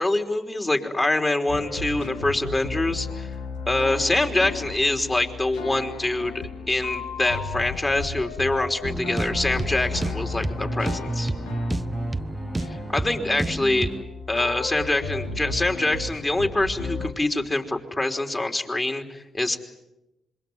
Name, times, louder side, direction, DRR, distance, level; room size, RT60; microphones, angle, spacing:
voice 1, 0.0-3.3 3.7-11.3 12.7-13.9 14.3-19.6, left 2 dB, 25° left, 5 dB, 3.7 m, -25 dB
sound 1, 1.5-17.1, left 4 dB, 85° left, 2.0 m, -34 dB
sound 2, 8.8-14.0, right 2 dB, 20° right, 0.9 m, -30 dB
26.5 x 22.5 x 9.6 m, 0.94 s
hypercardioid pair, 45°, 0 cm